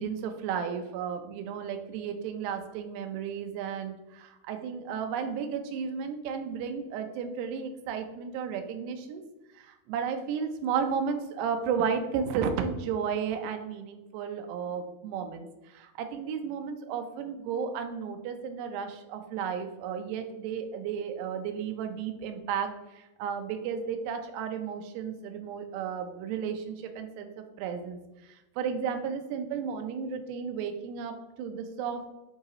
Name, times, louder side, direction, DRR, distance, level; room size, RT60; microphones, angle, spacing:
voice 1, 0.0-9.2 9.9-15.5 15.7-22.7 23.2-27.3 27.6-28.0 28.6-32.1, right 7 dB, 80° right, 5 dB, 2.7 m, -33 dB
8.1 x 3.8 x 3.0 m, 1.0 s
omnidirectional pair, 5.0 m